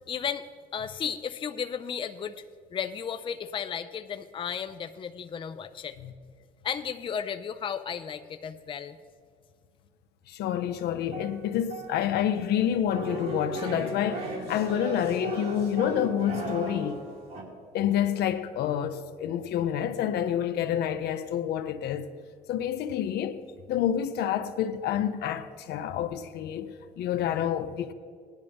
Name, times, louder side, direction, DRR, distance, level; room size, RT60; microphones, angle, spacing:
voice 1, 0.1-0.5 0.7-2.4 2.7-6.0 6.6-9.0, left 7 dB, 30° left, 0.5 m, -34 dB
voice 2, 10.3-17.1 17.7-22.1 22.5-27.9, left 10 dB, 75° left, 0.7 m, -28 dB
sound 1, 10.8-12.2 12.9-17.4, right 2 dB, 70° right, 3.2 m, -36 dB
18.5 x 11.0 x 3.5 m
cardioid pair, 110°, 17 cm